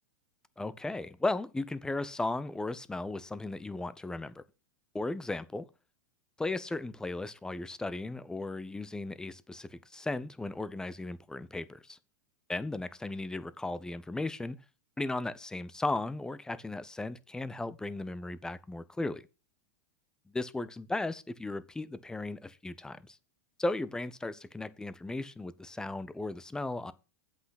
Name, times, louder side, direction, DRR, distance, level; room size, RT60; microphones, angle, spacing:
voice 1, 0.6-4.4 4.9-5.7 6.4-12.0 12.5-14.6 15.0-19.2 20.3-23.2 23.6-26.9, left 2 dB, 5° left, 0.7 m, -36 dB
7.9 x 5.9 x 5.9 m
supercardioid pair, 130°, 10 cm